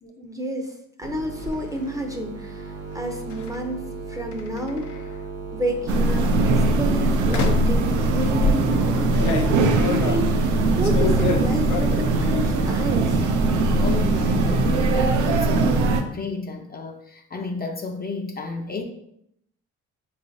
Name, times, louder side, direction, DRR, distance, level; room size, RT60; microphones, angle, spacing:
voice 1, 0.2-3.8 4.1-4.9 5.5-13.2, equal, 10° right, 3 dB, 0.6 m, -30 dB
sound 1, 1.0-1.6 3.3-3.6 4.3-5.1 5.9-6.2 7.3-7.8 8.4-12.2 12.5-13.1 13.3-13.9, left 4 dB, 75° left, 0.7 m, -29 dB
sound 2, 1.0-6.3, right 4 dB, 55° right, 0.8 m, -37 dB
sound 3, 5.9-16.0, right 2 dB, 85° right, 0.5 m, -20 dB
voice 2, 13.8-18.8, left 3 dB, 30° left, 3 dB, 0.6 m, -32 dB
4.6 x 3.2 x 2.7 m, 0.74 s
cardioid pair, 90°, 30 cm